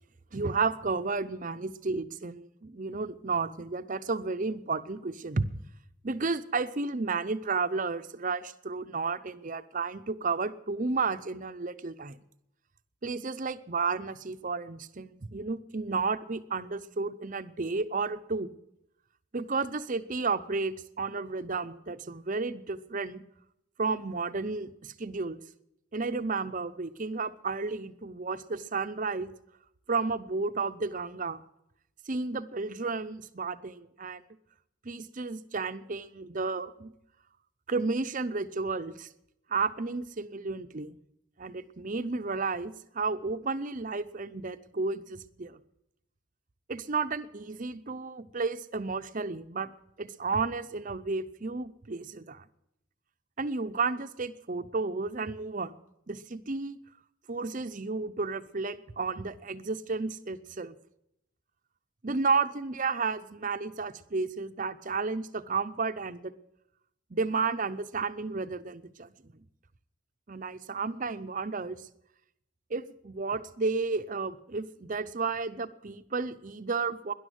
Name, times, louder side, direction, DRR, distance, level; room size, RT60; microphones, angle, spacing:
voice 1, 0.3-5.5 6.0-12.2 13.0-18.5 19.3-23.2 23.8-25.4 25.9-29.3 29.9-31.4 32.1-34.2 34.8-36.9 37.7-39.1 39.5-41.0 41.4-45.6 46.7-49.7 50.0-52.4 53.4-55.8 56.1-56.8 57.3-60.7 62.0-66.3 67.1-69.1 70.3-71.8 72.7-77.1, right 4 dB, 35° right, 12 dB, 0.6 m, -32 dB
12.5 x 11.0 x 9.3 m, 0.81 s
head